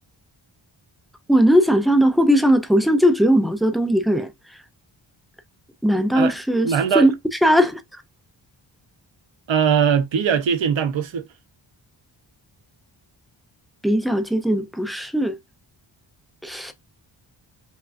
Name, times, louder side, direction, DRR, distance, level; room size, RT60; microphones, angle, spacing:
voice 1, 1.3-4.3 5.8-6.7 6.9-7.1 7.4-7.8 13.8-15.4 16.4-16.7, equal, ahead, 0.4 m, -18 dB
voice 2, 6.6-7.1 9.5-11.2, right 7 dB, 70° right, 0.8 m, -20 dB
5.5 x 2.4 x 2.4 m
wide cardioid pair, 165°, 47 cm